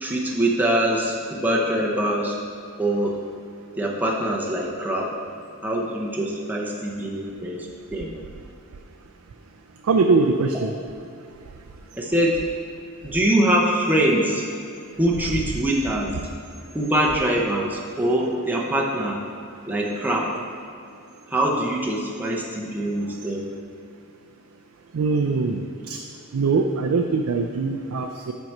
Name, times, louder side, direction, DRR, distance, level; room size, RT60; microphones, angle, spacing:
voice 1, 0.0-2.3 2.8-3.2 3.8-5.1 5.6-8.2 11.9-12.4 13.0-14.4 15.0-16.1 16.7-19.2 19.7-20.3 21.3-23.5, right 1 dB, 10° right, -3 dB, 0.7 m, -23 dB
voice 2, 9.9-10.7 24.9-26.0 26.3-28.3, right 4 dB, 70° right, 3 dB, 0.4 m, -22 dB
7.6 x 4.6 x 5.3 m, 2.5 s
head